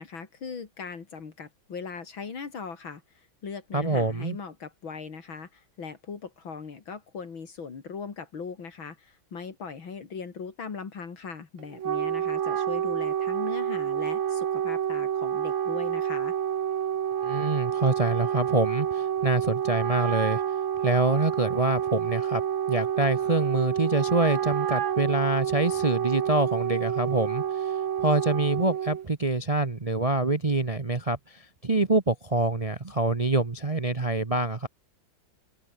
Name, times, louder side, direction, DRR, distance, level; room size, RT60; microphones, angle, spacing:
voice 1, 0.0-16.4, left 5 dB, 80° left, 3.6 m, -39 dB
voice 2, 3.7-4.4 17.2-20.4 20.8-22.4 22.7-27.7 28.0-34.7, right 2 dB, 25° right, 0.9 m, -26 dB
Wind instrument woodwind instrument, 11.6-29.1, right 9 dB, 50° right, 0.9 m, -28 dB
open air
omnidirectional pair, 2.1 m